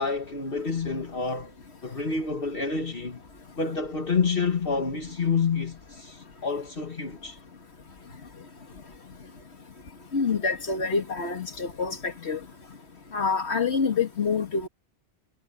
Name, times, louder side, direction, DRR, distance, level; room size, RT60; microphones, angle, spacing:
voice 1, 0.0-1.5 1.8-3.2 3.6-7.4, left 5 dB, 60° left, 2.1 m, -28 dB
voice 2, 10.1-12.4 13.1-14.7, left 5 dB, 80° left, 2.2 m, -26 dB
omnidirectional pair, 1.1 m